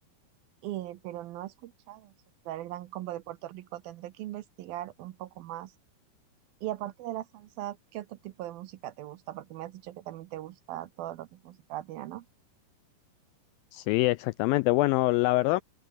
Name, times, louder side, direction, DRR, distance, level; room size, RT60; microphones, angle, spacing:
voice 1, 0.6-2.1 2.5-5.7 6.6-12.3, right 14 dB, 75° right, 2.5 m, -39 dB
voice 2, 13.7-15.6, left 20 dB, 85° left, 2.0 m, -24 dB
open air
omnidirectional pair, 4.6 m